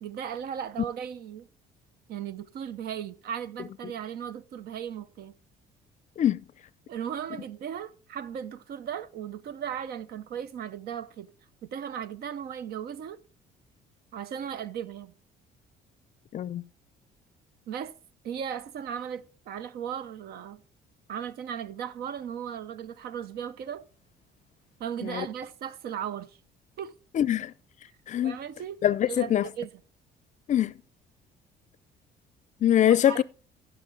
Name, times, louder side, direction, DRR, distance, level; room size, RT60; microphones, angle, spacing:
voice 1, 0.0-1.5 2.1-5.3 6.9-11.3 11.6-13.2 14.1-15.1 17.7-18.0 18.2-20.6 21.1-23.8 24.8-26.4 26.8-26.9 28.2-28.8 29.1-29.7 32.9-33.2, right 8 dB, 65° right, 0.7 m, -36 dB
voice 2, 16.3-16.6 25.0-25.3 27.1-27.5 28.1-28.4 28.8-29.4 30.5-30.7 32.6-33.2, left 11 dB, 45° left, 0.5 m, -23 dB
14.5 x 6.1 x 3.8 m
cardioid pair, 110°, 17 cm